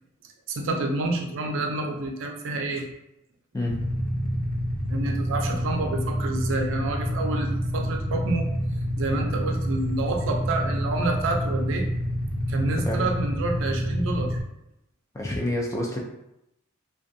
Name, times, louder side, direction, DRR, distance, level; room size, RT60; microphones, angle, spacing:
voice 1, 0.5-2.9 4.9-8.5 9.0-11.8 12.5-14.4, right 2 dB, 60° right, 2 dB, 0.4 m, -28 dB
Motorcycle / Idling, 3.7-14.4, equal, 85° left, 0.6 m, -28 dB
voice 2, 15.1-16.0, left 1 dB, 15° left, -2 dB, 0.3 m, -28 dB
2.5 x 2.2 x 2.5 m, 0.85 s
head